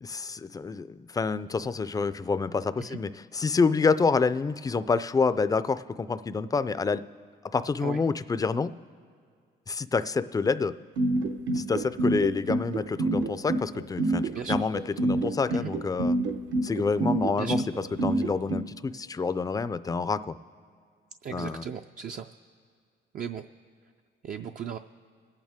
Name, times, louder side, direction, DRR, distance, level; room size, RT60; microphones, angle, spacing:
voice 1, 0.0-7.0 7.5-8.7 9.7-10.8 11.5-16.2 16.6-17.6 18.0-20.4 21.3-21.7, left 4 dB, 20° left, 14 dB, 0.4 m, -27 dB
sound 1, 11.0-18.6, right 2 dB, 70° right, 0.9 m, -26 dB
voice 2, 14.3-14.7 15.5-15.7 17.3-17.6 21.2-22.3 23.1-23.4 24.2-24.8, right 7 dB, 45° right, 6 dB, 0.4 m, -36 dB
24.0 x 8.9 x 3.6 m, 2.1 s
cardioid pair, 90°, 20 cm